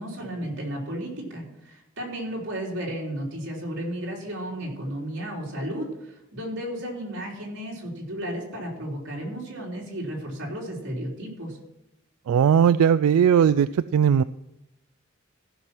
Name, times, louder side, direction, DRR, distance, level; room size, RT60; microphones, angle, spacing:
voice 1, 0.0-11.6, right 1 dB, 60° right, -2 dB, 3.4 m, -33 dB
voice 2, 12.3-14.2, right 8 dB, 90° right, 14 dB, 0.3 m, -18 dB
14.5 x 6.0 x 6.0 m, 0.89 s
head